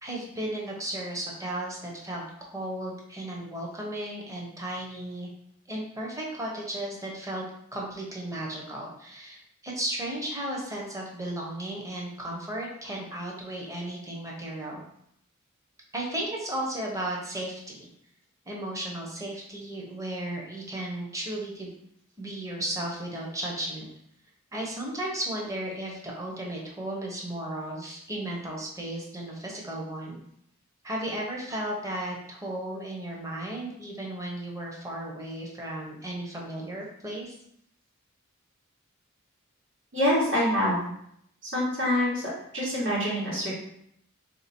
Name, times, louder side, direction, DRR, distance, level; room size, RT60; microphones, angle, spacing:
voice 1, 0.0-5.3 5.7-7.4 7.7-14.8 15.9-17.9 18.5-21.7 22.2-23.9 24.5-30.2 30.8-37.4, right 1 dB, 15° right, -2 dB, 0.9 m, -35 dB
voice 2, 39.9-40.8 41.4-42.2 42.5-43.5, equal, 60° right, -7 dB, 1.6 m, -25 dB
3.3 x 2.9 x 4.3 m, 0.72 s
head